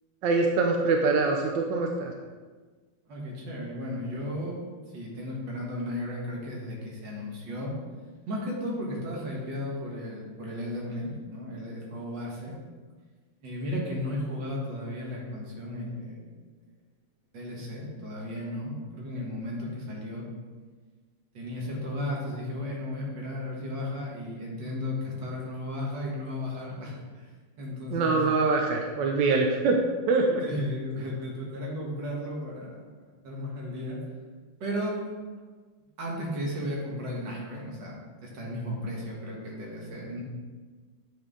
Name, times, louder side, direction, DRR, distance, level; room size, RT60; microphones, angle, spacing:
voice 1, 0.2-2.1 27.9-29.8 30.1-30.4, right 3 dB, 75° right, 2 dB, 1.1 m, -24 dB
voice 2, 3.1-4.6 4.9-7.7 8.3-12.6 13.4-16.4 17.3-20.3 21.3-27.3 27.6-28.2 30.4-32.8 33.2-34.0 34.6-35.0 36.0-38.0 38.2-40.2, left 1 dB, 55° right, -3 dB, 2.0 m, -34 dB
8.5 x 4.3 x 3.7 m, 1.4 s
omnidirectional pair, 2.4 m